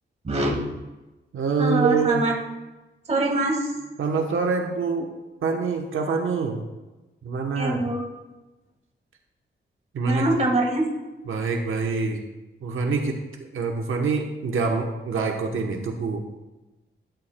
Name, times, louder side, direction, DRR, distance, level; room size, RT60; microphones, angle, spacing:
voice 1, 0.2-0.6 1.6-2.3 3.1-3.7 7.6-8.0 10.0-10.9, right 2 dB, 35° right, 0 dB, 1.8 m, -23 dB
voice 2, 1.3-2.3 4.0-5.1 5.4-6.6 7.2-7.9 9.9-10.3 11.3-12.2 12.6-13.2 13.5-16.2, right 4 dB, 85° right, 2 dB, 1.0 m, -25 dB
13.0 x 10.5 x 2.2 m, 1.1 s
wide cardioid pair, 180°, 20 cm